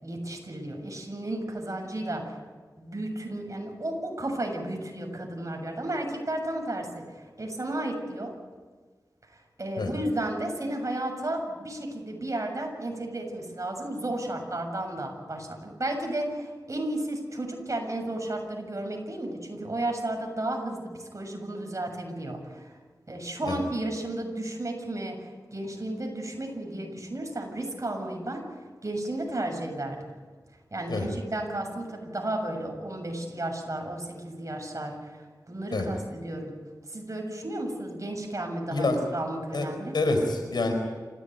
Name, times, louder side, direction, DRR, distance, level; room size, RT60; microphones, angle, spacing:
voice 1, 0.0-2.4 2.8-7.0 7.4-8.3 9.3-22.8 23.1-28.4 28.8-30.1 30.7-36.5 36.9-40.0, right 1 dB, 45° right, 3 dB, 7.0 m, -33 dB
voice 2, 39.9-40.7, left 2 dB, 90° left, 5 dB, 4.6 m, -26 dB
27.5 x 16.0 x 9.3 m, 1.4 s
cardioid pair, 50°, 7 cm